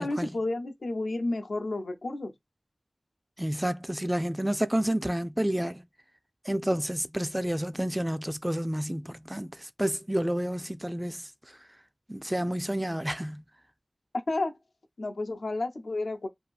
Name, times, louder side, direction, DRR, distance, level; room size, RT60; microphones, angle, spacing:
voice 1, 0.0-2.3 14.3-14.6 15.0-16.3, left 2 dB, 90° left, 0.5 m, -31 dB
voice 2, 3.4-5.8 6.5-11.3 12.1-13.4, right 1 dB, 10° right, 0.3 m, -30 dB
2.7 x 2.5 x 2.3 m
wide cardioid pair, 40°, 0 cm